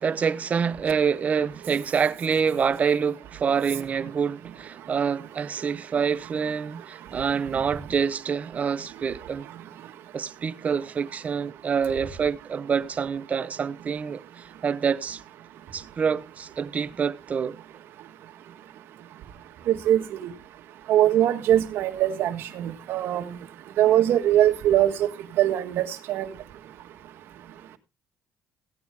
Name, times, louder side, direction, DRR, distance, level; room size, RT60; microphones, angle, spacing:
voice 1, 0.0-9.5 10.1-15.2 15.7-17.6, right 6 dB, 40° right, 0.8 m, -26 dB
voice 2, 19.7-20.3 20.9-23.2 23.8-25.1 25.4-26.3, right 12 dB, 70° right, 1.6 m, -22 dB
16.0 x 9.1 x 3.5 m
cardioid pair, 95°, 4 cm